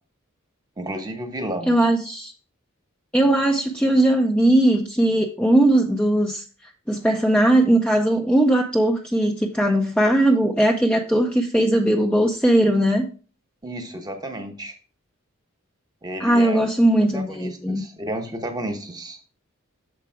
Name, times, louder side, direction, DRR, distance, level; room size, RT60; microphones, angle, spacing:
voice 1, 0.8-1.8 13.6-14.8 16.0-16.7 17.1-19.2, right 1 dB, 20° right, 5 dB, 1.1 m, -32 dB
voice 2, 1.7-2.3 3.1-6.4 6.9-13.1 16.2-17.8, right 1 dB, 5° left, 1 dB, 0.5 m, -19 dB
6.8 x 4.7 x 4.6 m, 0.38 s
head